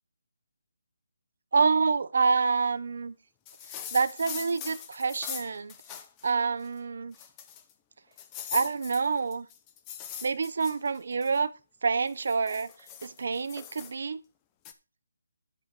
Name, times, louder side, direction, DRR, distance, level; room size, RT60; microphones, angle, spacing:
voice 1, 1.5-3.2 3.9-5.7 6.2-7.1 8.5-9.5 10.2-11.5 11.8-12.7 13.0-14.2, right 4 dB, 45° right, 14 dB, 0.8 m, -27 dB
sound 1, 3.5-6.3 6.6-6.7 7.1-7.7 8.2-11.4 12.0-13.9 14.6-14.7, left 9 dB, 10° left, 0.6 m, -41 dB
10.5 x 4.8 x 6.0 m, 0.31 s
hypercardioid pair, 180°, 0 cm